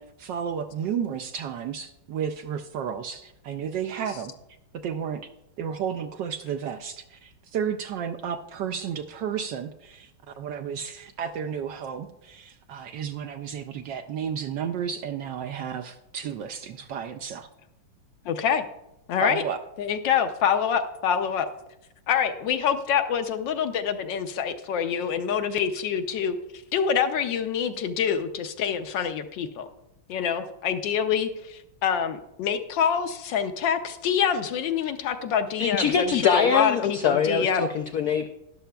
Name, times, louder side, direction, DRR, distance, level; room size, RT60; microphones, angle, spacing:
voice 1, 0.0-4.3 4.7-5.3 5.6-10.1 10.4-17.5 19.2-19.6, right 8 dB, 75° right, 6 dB, 1.0 m, -32 dB
voice 2, 18.3-18.6 19.1-19.4 19.8-21.5 22.1-26.4 26.7-29.7 30.1-37.7, left 7 dB, 70° left, 7 dB, 1.2 m, -26 dB
voice 3, 35.6-38.3, left 6 dB, 90° left, 5 dB, 0.8 m, -23 dB
12.5 x 11.0 x 2.3 m, 0.87 s
omnidirectional pair, 2.3 m